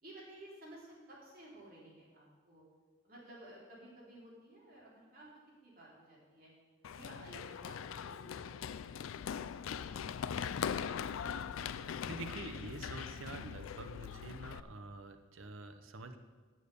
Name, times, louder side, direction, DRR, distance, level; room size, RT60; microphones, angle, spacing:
voice 1, 0.0-2.6 3.0-5.3 5.6-6.5 6.9-10.5, right 1 dB, 45° right, -5 dB, 3.5 m, -55 dB
Run, 6.8-14.6, left 7 dB, 85° left, 0.4 m, -41 dB
voice 2, 11.6-16.2, right 2 dB, 85° right, 8 dB, 0.9 m, -47 dB
9.7 x 7.3 x 6.8 m, 1.4 s
head